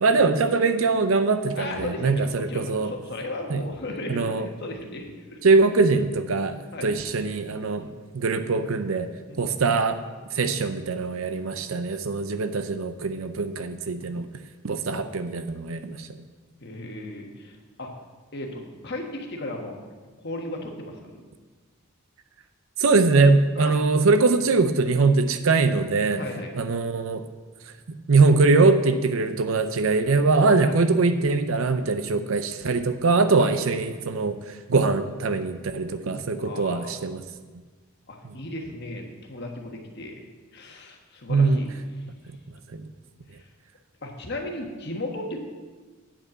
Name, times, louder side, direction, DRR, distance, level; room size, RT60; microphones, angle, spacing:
voice 1, 0.0-2.9 3.5-3.6 4.1-4.5 5.4-6.6 6.8-7.9 8.1-9.1 9.4-10.0 10.4-14.3 14.6-16.1 22.8-26.2 26.6-27.3 28.1-34.4 34.7-37.2 41.3-41.6 42.7-42.8, right 3 dB, 75° right, 10 dB, 0.6 m, -22 dB
voice 2, 1.5-5.4 6.7-6.9 7.8-7.9 9.3-9.6 14.9-15.0 16.6-17.9 18.3-19.8 20.2-21.2 23.5-23.8 26.1-26.5 30.6-30.7 33.4-33.5 36.4-37.0 38.1-40.2 40.5-42.0 43.4-43.5 44.0-45.4, left 1 dB, 50° left, 1 dB, 1.4 m, -36 dB
8.8 x 5.3 x 7.3 m, 1.4 s
head